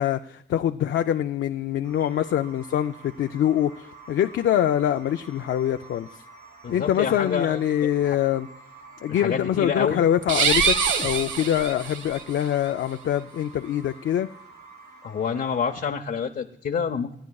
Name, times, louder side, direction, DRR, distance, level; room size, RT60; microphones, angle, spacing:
voice 1, 0.0-6.1 6.7-8.5 9.0-10.7 11.0-14.3, left 10 dB, 90° left, 0.4 m, -24 dB
sound 1, 1.8-15.9, right 3 dB, 60° right, 4.9 m, -48 dB
voice 2, 6.6-8.2 9.1-10.0 15.0-17.1, left 6 dB, 55° left, 0.7 m, -28 dB
sound 2, 10.2-12.2, right 6 dB, 90° right, 1.1 m, -24 dB
26.0 x 9.8 x 2.3 m
wide cardioid pair, 105°, 19 cm